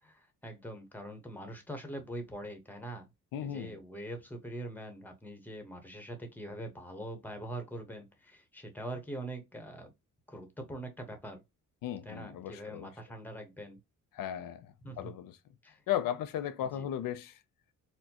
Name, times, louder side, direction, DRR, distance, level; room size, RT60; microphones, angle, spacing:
voice 1, 0.0-3.1 3.4-9.9 10.3-11.4 12.0-13.8 14.8-15.1 15.6-15.8 16.6-16.9, right 1 dB, 5° left, 1.0 m, -43 dB
voice 2, 3.3-3.8 11.8-12.9 14.1-15.4 15.9-17.4, left 11 dB, 90° left, 0.5 m, -36 dB
4.2 x 2.2 x 2.8 m
cardioid pair, 115°, 32 cm